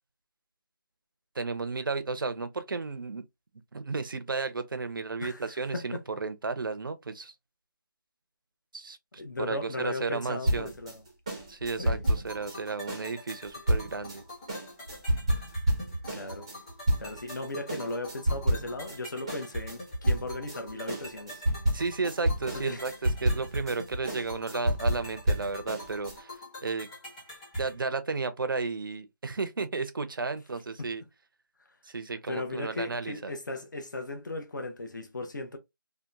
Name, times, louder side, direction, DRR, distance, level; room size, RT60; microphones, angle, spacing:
voice 1, 1.4-3.2 3.7-7.3 8.7-9.0 9.4-10.7 11.5-14.2 21.7-26.4 26.6-26.9 27.6-31.0 31.8-33.3, right 4 dB, 65° right, 0.5 m, -33 dB
voice 2, 5.2-6.0 9.2-11.0 11.8-12.0 16.1-16.5 17.0-21.4 22.5-22.9 30.8-30.9 32.3-35.6, left 2 dB, 55° left, 0.7 m, -37 dB
sound 1, 10.5-17.4 17.7-19.0 19.3-26.2, right 1 dB, 15° right, 0.5 m, -29 dB
sound 2, 11.8-27.8, equal, 15° left, 0.9 m, -44 dB
2.8 x 2.1 x 2.3 m
figure-of-eight pair, 170°, 12 cm